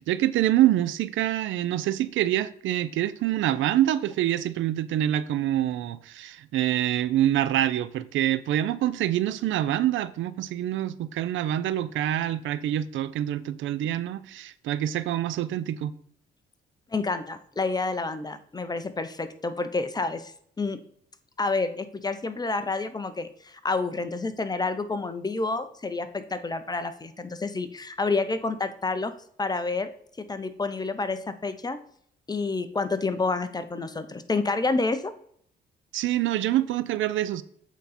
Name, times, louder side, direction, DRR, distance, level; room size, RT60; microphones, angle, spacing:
voice 1, 0.0-15.9 35.9-37.4, right 12 dB, 75° right, 0.5 m, -26 dB
voice 2, 16.9-20.3 20.6-20.8 21.4-29.1 29.4-29.9 30.3-31.8 32.3-35.1, left 3 dB, 20° left, 0.7 m, -29 dB
8.2 x 3.9 x 4.1 m
cardioid pair, 90°, 20 cm